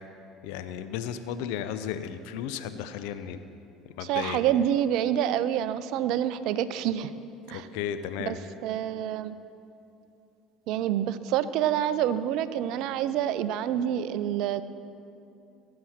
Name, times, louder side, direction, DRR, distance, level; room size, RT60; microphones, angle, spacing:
voice 1, 0.4-3.4 4.0-4.4 7.5-8.4, left 9 dB, 65° left, 10 dB, 0.6 m, -34 dB
voice 2, 4.0-7.1 7.5-7.7 8.3-8.4 8.6-9.4 10.7-14.6, right 10 dB, 60° right, 14 dB, 0.5 m, -27 dB
18.0 x 7.6 x 4.3 m, 2.7 s
hypercardioid pair, 65°, 0 cm